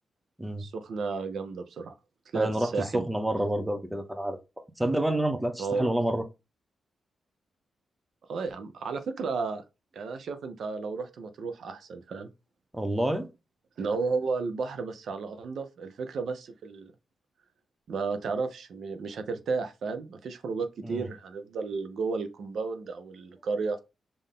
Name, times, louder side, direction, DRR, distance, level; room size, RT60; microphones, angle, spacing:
voice 1, 0.6-1.9 2.3-3.0 5.6-5.9 8.3-9.6 9.9-12.3 13.8-16.9 17.9-23.8, right 4 dB, 65° right, 0.6 m, -33 dB
voice 2, 2.3-4.4 4.8-6.2 12.7-13.3 20.8-21.0, right 1 dB, 5° right, 0.5 m, -28 dB
5.7 x 2.5 x 3.6 m
wide cardioid pair, 145°, 0 cm